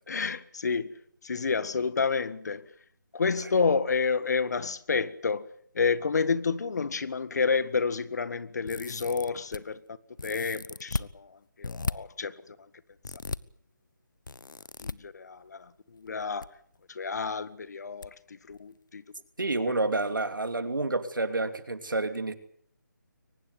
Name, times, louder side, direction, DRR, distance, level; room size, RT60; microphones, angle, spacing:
voice 1, 0.1-0.9 1.2-2.7 3.1-5.5 5.7-9.8 10.2-11.3 11.6-12.6 14.8-16.5 16.9-18.1 18.5-19.0 19.7-19.8, left 5 dB, 55° left, 1.7 m, -29 dB
sound 1, 8.7-9.6 10.2-11.1 11.6-11.9 13.0-13.4 14.3-14.9 16.1-16.5 16.7-16.8 18.0-18.1 18.5-18.6, left 4 dB, 75° left, 1.0 m, -35 dB
voice 2, 19.4-22.4, right 2 dB, 80° right, 2.9 m, -29 dB
23.5 x 20.0 x 8.2 m
figure-of-eight pair, 155°, 11 cm